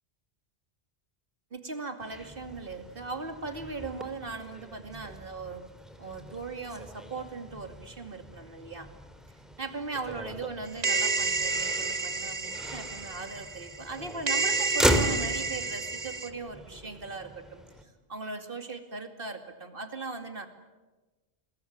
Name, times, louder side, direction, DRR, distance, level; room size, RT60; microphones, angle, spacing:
voice 1, 1.5-5.6 6.0-8.9 9.6-20.5, right 3 dB, 60° right, 7 dB, 2.7 m, -39 dB
Motor vehicle (road), 2.0-17.8, equal, ahead, 2.7 m, -37 dB
sound 1, 10.8-14.0 14.3-16.3, right 4 dB, 40° right, 1.5 m, -30 dB
28.5 x 22.0 x 9.5 m, 1.2 s
omnidirectional pair, 1.0 m